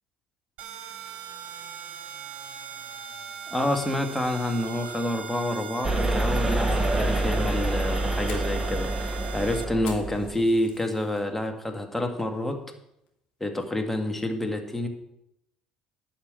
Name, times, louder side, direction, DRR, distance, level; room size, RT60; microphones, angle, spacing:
sound 1, 0.6-9.6, right 9 dB, 60° right, 1.0 m, -40 dB
voice 1, 3.5-12.6 13.4-14.9, left 1 dB, 5° left, 4 dB, 2.1 m, -28 dB
sound 2, 5.8-10.4, right 2 dB, 15° right, 1.6 m, -26 dB
Fire, 7.8-11.2 11.6-12.0 12.4-12.5 13.1-13.4, left 6 dB, 65° left, 2.9 m, -46 dB
11.5 x 5.6 x 8.7 m, 0.80 s
hypercardioid pair, 60°, 3 cm